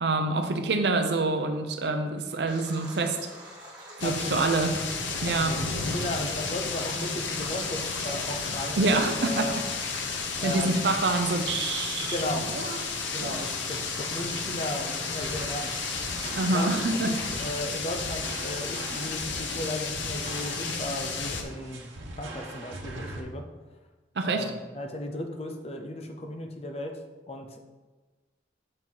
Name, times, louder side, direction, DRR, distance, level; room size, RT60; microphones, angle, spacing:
voice 1, 0.0-3.2 4.0-4.7 5.2-5.5 8.8-9.5 10.4-12.8 13.2-13.5 16.3-17.2 24.2-24.4, right 3 dB, 60° right, 6 dB, 0.6 m, -26 dB
Stream, 2.5-17.5, right 1 dB, 20° right, 1.5 m, -45 dB
sound 1, 4.0-21.4, left 4 dB, 75° left, 0.8 m, -32 dB
voice 2, 4.0-4.5 5.4-5.6 5.9-9.5 10.4-10.8 12.1-12.5 13.1-15.8 16.3-21.9 22.2-23.5 24.3-27.0 27.3-27.6, left 1 dB, 30° left, 4 dB, 0.6 m, -35 dB
sound 2, 15.2-23.2, right 2 dB, 80° right, 1.1 m, -42 dB
7.5 x 4.6 x 3.9 m, 1.3 s
head